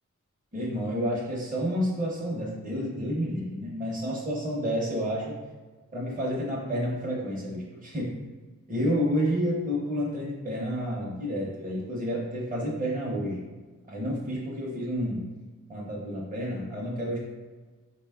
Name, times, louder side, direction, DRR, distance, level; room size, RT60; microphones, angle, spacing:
voice 1, 0.5-5.3 5.9-8.1 8.7-13.4 13.9-15.2 15.7-17.2, equal, 25° right, -4 dB, 0.7 m, -30 dB
3.8 x 2.2 x 3.5 m, 1.3 s
wide cardioid pair, 70°, 31 cm